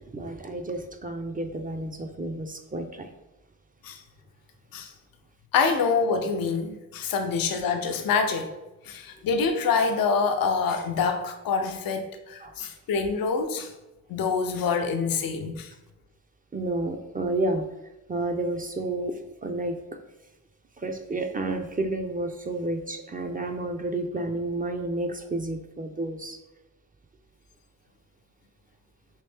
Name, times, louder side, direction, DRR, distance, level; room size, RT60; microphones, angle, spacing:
voice 1, 0.0-3.1 12.4-12.5 16.5-17.7 18.1-20.0 20.8-26.4, right 2 dB, 25° right, 5 dB, 0.5 m, -31 dB
voice 2, 5.5-8.5 8.8-13.7 14.1-15.7, left 5 dB, 85° left, 5 dB, 0.5 m, -26 dB
3.1 x 2.6 x 3.3 m, 1.0 s
cardioid pair, 45°, 34 cm